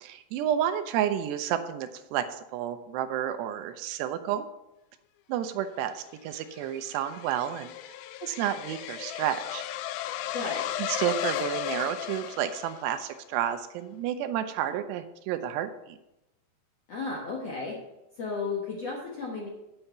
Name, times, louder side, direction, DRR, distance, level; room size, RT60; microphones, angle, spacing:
voice 1, 0.0-4.5 5.3-7.7 8.2-9.6 10.9-16.0, right 10 dB, 85° right, 9 dB, 2.8 m, -31 dB
sound 1, 6.1-13.2, left 12 dB, 90° left, 2.1 m, -35 dB
voice 2, 10.3-10.7 16.9-17.8 18.1-19.5, left 4 dB, 65° left, -2 dB, 1.6 m, -33 dB
8.8 x 5.5 x 8.0 m, 0.92 s
omnidirectional pair, 4.8 m